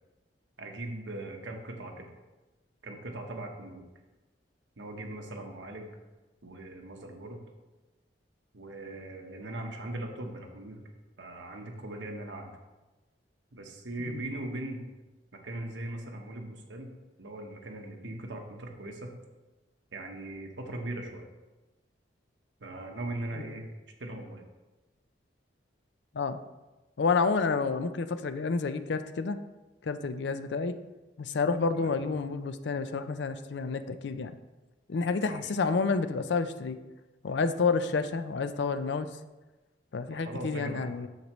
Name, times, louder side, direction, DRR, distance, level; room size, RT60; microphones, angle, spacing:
voice 1, 0.6-2.1 2.8-3.8 4.8-5.9 6.4-7.4 8.5-10.9 11.2-12.5 13.5-14.8 15.3-16.9 17.2-19.1 19.9-21.2 22.6-23.7 24.0-24.4 31.7-31.9 35.2-35.5 40.2-40.9, right 1 dB, 85° right, 2 dB, 1.1 m, -39 dB
voice 2, 27.0-29.4 29.8-30.7 31.2-34.3 34.9-36.8 37.2-39.1 39.9-41.1, left 4 dB, 70° left, 11 dB, 0.5 m, -29 dB
7.9 x 6.7 x 3.1 m, 1.1 s
head